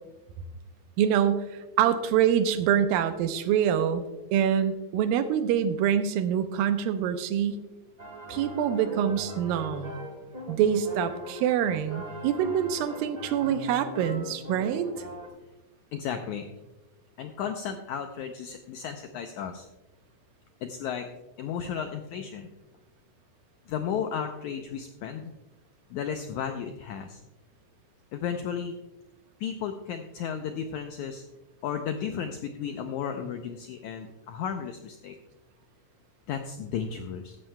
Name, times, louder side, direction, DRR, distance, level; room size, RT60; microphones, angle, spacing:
voice 1, 1.0-1.4 1.8-4.0 4.3-7.6 8.3-9.9 10.5-14.9, right 9 dB, 80° right, 9 dB, 2.5 m, -25 dB
sound 1, 8.0-15.3, equal, 30° right, 1.1 m, -41 dB
voice 2, 15.9-16.5 17.2-19.7 20.6-21.1 21.4-22.5 23.7-25.3 25.9-27.2 28.1-28.8 29.4-31.2 31.6-35.2 36.3-37.4, left 7 dB, 85° left, 5 dB, 1.7 m, -34 dB
15.0 x 13.0 x 2.2 m, 1.0 s
omnidirectional pair, 4.1 m